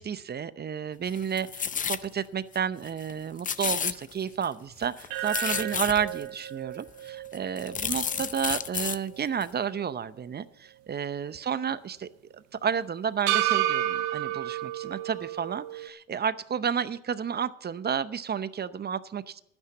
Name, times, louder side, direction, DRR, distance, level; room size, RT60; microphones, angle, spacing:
voice 1, 0.0-19.4, right 7 dB, 30° right, 15 dB, 0.7 m, -31 dB
sound 1, 1.1-2.1 2.5-2.6 2.9-3.1 3.4-4.5 4.8-6.2 6.9-7.0 7.3-9.0 9.4-9.5, left 7 dB, 25° left, 0.6 m, -31 dB
sound 2, 5.1-9.4 9.8-9.9 13.3-15.9, right 13 dB, 80° right, 1.1 m, -31 dB
11.5 x 9.8 x 7.0 m, 0.76 s
supercardioid pair, 95°, 34 cm